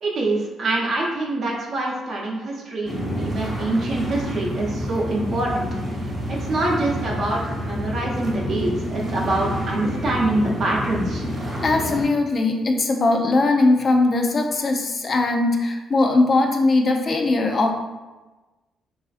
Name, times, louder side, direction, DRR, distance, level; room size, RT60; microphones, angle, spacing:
voice 1, 0.0-5.7 6.0-11.2, right 2 dB, 60° right, -3 dB, 0.6 m, -25 dB
sound 1, 2.9-12.0, equal, 30° right, 0.9 m, -28 dB
voice 2, 11.6-17.7, left 2 dB, 40° left, 3 dB, 0.4 m, -20 dB
3.2 x 2.4 x 2.4 m, 1.2 s
cardioid pair, 90°, 0 cm